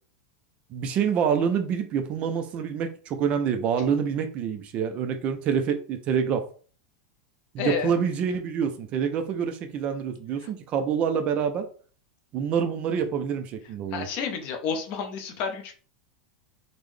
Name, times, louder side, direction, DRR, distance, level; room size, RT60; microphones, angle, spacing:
voice 1, 0.7-6.5 7.5-11.6 12.3-14.1, right 7 dB, 30° right, 7 dB, 0.3 m, -26 dB
voice 2, 7.6-7.9 13.9-15.7, left 6 dB, 35° left, 4 dB, 0.6 m, -30 dB
3.6 x 2.0 x 3.1 m, 0.41 s
supercardioid pair, 165°, 4 cm